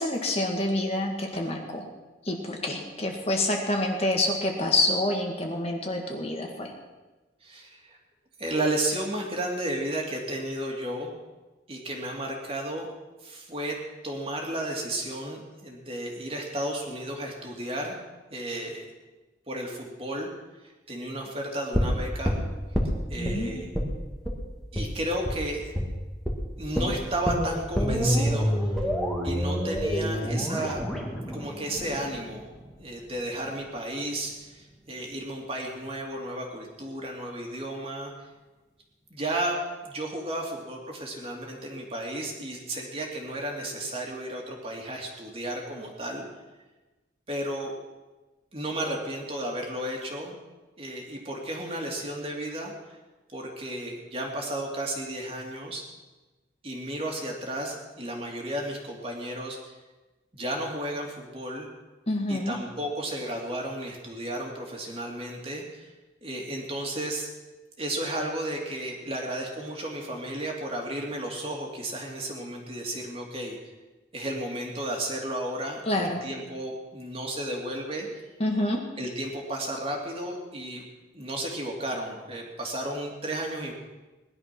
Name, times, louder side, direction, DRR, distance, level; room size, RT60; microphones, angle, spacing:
voice 1, 0.0-1.9 2.3-6.7 23.2-23.6 62.1-62.5 75.9-76.2 78.4-78.8, left 1 dB, 30° left, 1 dB, 2.0 m, -27 dB
voice 2, 7.4-8.0 8.4-11.1 11.7-12.9 13.2-13.8 14.0-18.0 18.3-18.9 19.5-20.3 20.6-22.4 23.1-23.7 24.7-25.7 26.6-28.7 29.2-30.8 31.3-32.5 32.8-38.1 39.1-46.3 47.3-47.7 48.5-50.3 50.8-53.0 53.3-55.8 56.6-59.6 60.3-61.7 62.3-65.9 66.2-67.3 67.8-73.6 74.1-78.3 79.0-80.8 81.1-83.7, right 1 dB, 30° right, 0 dB, 2.7 m, -33 dB
sound 1, 21.7-23.4 23.7-23.9 24.2-24.4 24.7-24.9 25.2-25.4 25.7-25.9 26.2-26.4 26.7-32.7 33.0-33.1, equal, ahead, 2.2 m, -28 dB
19.5 x 11.5 x 6.1 m, 1.2 s
head